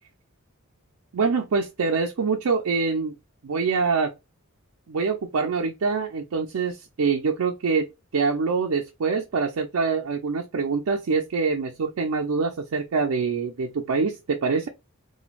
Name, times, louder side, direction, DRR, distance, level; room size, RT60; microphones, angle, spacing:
voice 1, 1.1-3.2 3.4-4.1 4.9-7.9 8.1-14.7, right 4 dB, 85° right, 0.5 m, -25 dB
3.1 x 2.2 x 2.4 m
head